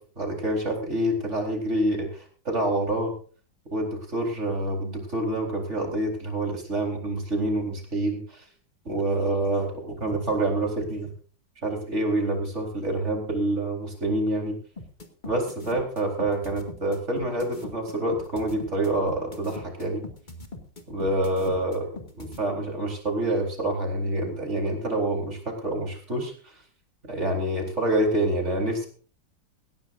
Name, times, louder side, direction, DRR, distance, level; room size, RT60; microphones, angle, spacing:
voice 1, 0.0-3.1 3.7-8.4 8.8-11.1 11.6-14.6 15.2-20.1 20.9-21.8 22.2-26.5 27.1-28.9, right 1 dB, 35° right, 2 dB, 4.5 m, -27 dB
sound 1, 14.8-22.4, left 2 dB, 25° left, 2.4 m, -41 dB
19.0 x 16.0 x 2.6 m, 0.41 s
omnidirectional pair, 2.0 m